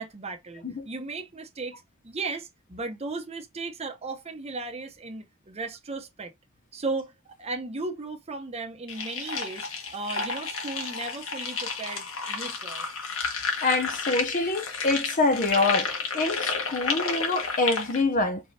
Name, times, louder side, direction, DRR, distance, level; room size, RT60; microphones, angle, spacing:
voice 1, 0.0-6.3 6.7-7.1 7.4-12.8, right 3 dB, 30° right, 0.8 m, -36 dB
sound 1, 8.9-18.0, left 4 dB, 80° left, 1.3 m, -31 dB
voice 2, 13.6-18.4, left 3 dB, 40° left, 0.6 m, -26 dB
4.5 x 3.3 x 2.7 m
head